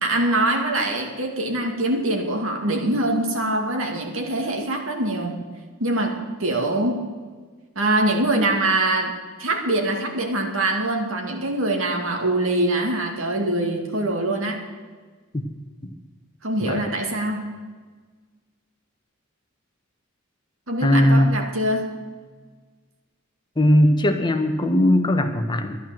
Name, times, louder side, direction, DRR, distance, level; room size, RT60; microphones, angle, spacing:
voice 1, 0.0-5.4 5.8-7.0 7.8-14.6 16.4-17.5 20.7-21.9, right 1 dB, 70° right, 3 dB, 2.2 m, -23 dB
voice 2, 20.8-21.4 23.6-25.8, left 1 dB, 20° left, 6 dB, 0.9 m, -19 dB
11.5 x 11.0 x 7.6 m, 1.5 s
head